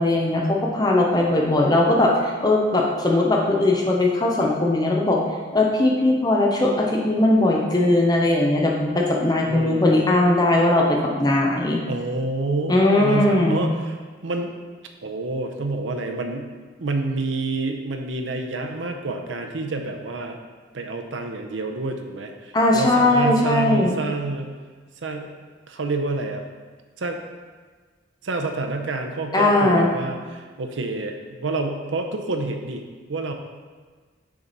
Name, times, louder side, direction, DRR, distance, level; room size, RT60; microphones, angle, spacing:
voice 1, 0.0-5.2 5.5-11.8 12.7-13.6 22.5-24.0 29.3-29.9, left 2 dB, 20° left, -1 dB, 0.7 m, -19 dB
voice 2, 9.5-10.0 11.9-14.0 14.2-14.5 15.0-16.5 16.8-20.4 20.7-24.5 25.0-25.3 25.7-26.4 27.0-27.2 28.2-32.8 33.1-33.3, right 2 dB, 80° right, 5 dB, 0.7 m, -28 dB
6.2 x 4.6 x 4.1 m, 1.5 s
head